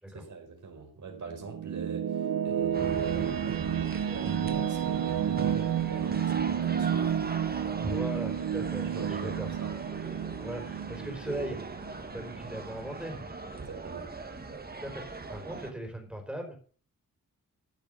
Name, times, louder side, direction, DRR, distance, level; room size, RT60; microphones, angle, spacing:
voice 1, 0.1-7.1 8.8-9.8 10.9-11.0 13.6-14.1, right 4 dB, 60° right, 4.7 m, -42 dB
sound 1, 1.1-12.4, right 9 dB, 75° right, 0.9 m, -31 dB
sound 2, 2.7-15.7, right 3 dB, 25° right, 1.7 m, -40 dB
voice 2, 7.8-9.5 10.4-11.6 12.1-13.3 14.8-16.6, right 1 dB, 5° right, 4.5 m, -38 dB
14.5 x 6.9 x 6.4 m
wide cardioid pair, 115°, 35 cm